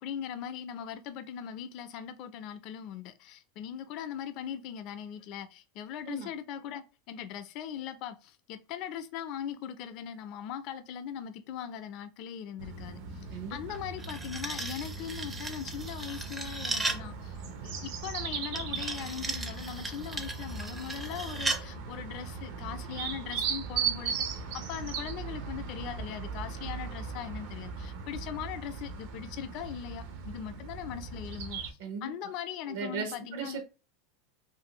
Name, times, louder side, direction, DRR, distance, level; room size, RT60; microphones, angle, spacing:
voice 1, 0.0-13.3 13.5-17.4 17.6-33.6, left 9 dB, 50° left, 0.4 m, -40 dB
sound 1, 12.6-31.7, right 5 dB, 60° right, 0.5 m, -38 dB
sound 2, 13.7-17.1 18.6-21.7, right 2 dB, 15° right, 0.4 m, -36 dB
voice 2, 31.8-32.1 32.7-33.6, right 5 dB, 80° right, 0.9 m, -37 dB
2.6 x 2.5 x 2.9 m
supercardioid pair, 140°, 0 cm